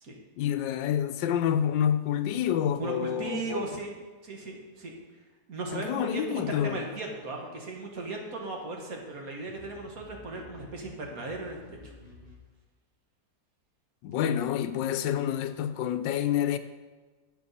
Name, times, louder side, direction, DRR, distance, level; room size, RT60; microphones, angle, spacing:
voice 1, 0.4-3.7 5.7-6.8 14.0-16.6, left 9 dB, 85° left, 1.3 m, -28 dB
voice 2, 2.8-3.9 4.2-4.9 5.5-11.9, right 3 dB, 55° right, 1.8 m, -37 dB
sound 1, 6.5-12.4, left 3 dB, 25° right, 1.6 m, -54 dB
9.5 x 8.8 x 4.2 m
omnidirectional pair, 1.9 m